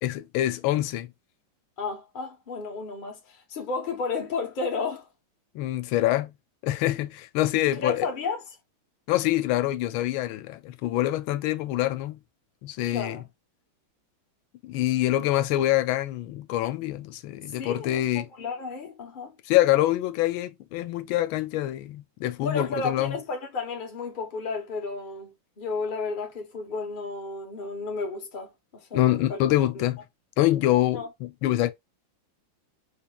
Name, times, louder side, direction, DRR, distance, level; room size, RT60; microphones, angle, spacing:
voice 1, 0.0-1.1 5.5-6.3 6.6-8.1 9.1-12.2 12.6-13.2 14.6-18.3 19.5-23.2 28.9-30.0 30.4-31.7, left 15 dB, 90° left, 1.4 m, -25 dB
voice 2, 1.8-5.1 7.7-8.4 12.9-13.2 17.6-19.3 22.4-28.5 28.9-29.4 29.7-29.8 30.9-31.1, left 4 dB, 35° left, 1.0 m, -32 dB
4.4 x 3.6 x 2.3 m
omnidirectional pair, 2.2 m